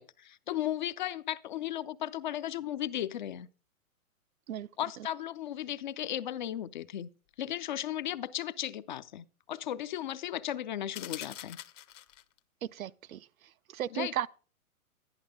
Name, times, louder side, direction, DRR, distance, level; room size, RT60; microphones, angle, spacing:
voice 1, 0.0-3.5 4.8-7.1 7.4-11.6 13.9-14.2, left 12 dB, 35° left, 0.4 m, -35 dB
Shaking Pill Bottle, 10.9-12.4, left 13 dB, 55° left, 0.9 m, -44 dB
voice 2, 12.6-13.3 13.7-14.3, right 11 dB, 70° right, 0.6 m, -35 dB
11.0 x 10.5 x 3.6 m
hypercardioid pair, 125°, 43 cm